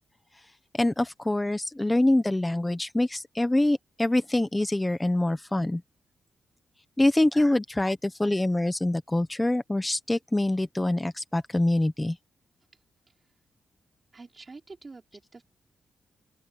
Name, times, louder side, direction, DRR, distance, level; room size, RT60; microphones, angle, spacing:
voice 1, 0.7-5.8 7.0-12.2, left 1 dB, 10° left, 1.1 m, -25 dB
voice 2, 12.7-13.3 14.1-15.4, right 3 dB, 25° right, 4.8 m, -48 dB
open air
wide cardioid pair, 155°, 0 cm